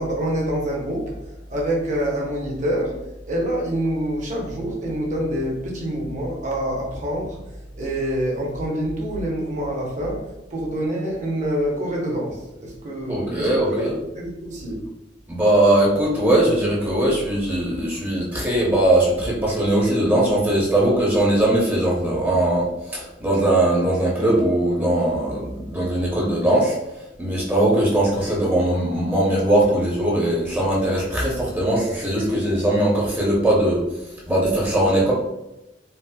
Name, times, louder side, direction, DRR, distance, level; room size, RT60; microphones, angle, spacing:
voice 1, 0.0-13.8 14.1-14.9, right 1 dB, 45° right, -2 dB, 0.8 m, -26 dB
voice 2, 13.1-13.9 15.3-26.7 27.2-33.8 34.3-35.1, right 1 dB, 10° right, -5 dB, 0.6 m, -20 dB
4.1 x 2.0 x 2.2 m, 0.93 s
head